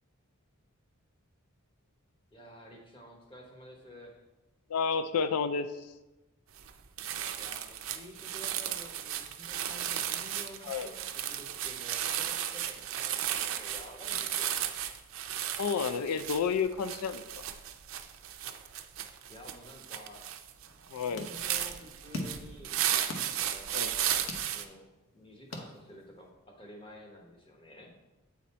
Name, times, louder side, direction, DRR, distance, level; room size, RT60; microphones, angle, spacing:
voice 1, 2.3-4.2 7.3-14.5 19.3-20.3 20.9-22.8 23.4-24.9 25.1-27.9, equal, 25° left, 0 dB, 1.1 m, -51 dB
voice 2, 4.7-5.7 10.7-10.9 15.6-17.4 20.9-21.3 23.7-23.9, left 6 dB, 90° left, 10 dB, 0.4 m, -30 dB
sound 1, 6.6-6.7 7.0-24.6, right 11 dB, 60° right, 0.5 m, -35 dB
sound 2, 20.6-26.3, left 2 dB, 60° left, 0.9 m, -45 dB
8.4 x 4.1 x 4.2 m, 1.1 s
head